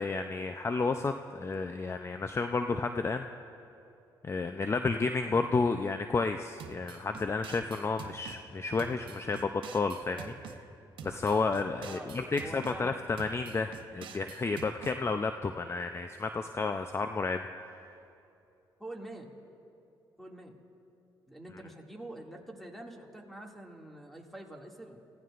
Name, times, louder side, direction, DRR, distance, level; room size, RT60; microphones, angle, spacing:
voice 1, 0.0-3.3 4.2-10.3 11.0-17.9, left 4 dB, 30° left, 7 dB, 0.5 m, -31 dB
sound 1, 6.6-8.4 8.8-10.6 11.0-12.8 13.2-15.0, right 7 dB, 70° right, 0.9 m, -46 dB
voice 2, 12.4-13.0 18.8-19.3 20.2-20.5 21.3-25.0, right 1 dB, ahead, 0 dB, 2.3 m, -46 dB
28.0 x 16.0 x 2.5 m, 2.7 s
cardioid pair, 70°, 9 cm